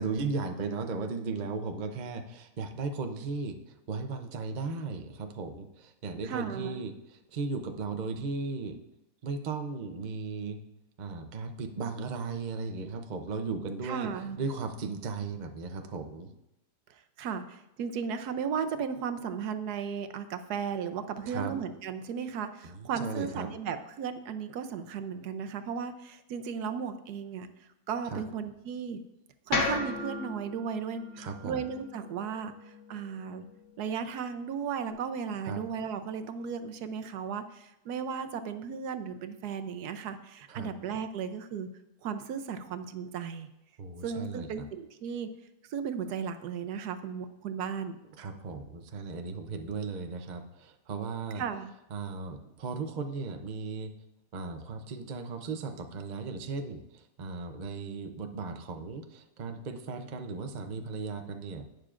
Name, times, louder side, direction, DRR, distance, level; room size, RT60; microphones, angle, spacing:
voice 1, 0.0-8.8 9.2-10.6 11.0-14.1 14.4-16.3 21.2-21.5 22.6-23.5 28.0-28.2 31.2-31.6 35.4-35.6 40.5-40.7 43.8-44.6 48.2-51.4 51.9-53.9 54.3-61.6, right 4 dB, 50° right, 6 dB, 0.5 m, -36 dB
voice 2, 6.2-6.8 13.8-14.4 16.9-29.0 29.5-33.4 33.8-41.7 42.0-43.5 44.0-45.3 45.7-48.0 51.4-51.7, right 6 dB, 70° right, 9 dB, 1.1 m, -35 dB
sound 1, 29.5-33.7, left 3 dB, 70° left, 1.9 m, -35 dB
11.5 x 9.3 x 2.5 m, 0.90 s
omnidirectional pair, 1.8 m